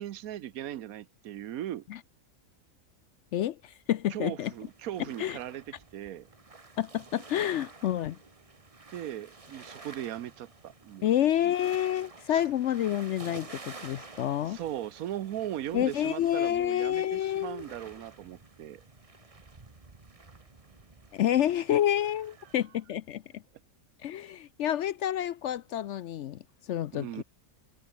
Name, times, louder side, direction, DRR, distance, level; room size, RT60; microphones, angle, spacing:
voice 1, 0.0-1.9 4.1-6.3 8.9-11.1 12.3-12.4 14.4-18.8 26.9-27.2, right 12 dB, 80° right, 1.2 m, -38 dB
voice 2, 3.3-4.5 5.2-5.4 6.8-8.2 11.0-14.6 15.7-17.6 21.1-23.4 24.0-27.2, left 11 dB, 65° left, 0.8 m, -29 dB
sound 1, 4.5-22.7, right 3 dB, 25° right, 1.4 m, -51 dB
omnidirectional pair, 1.5 m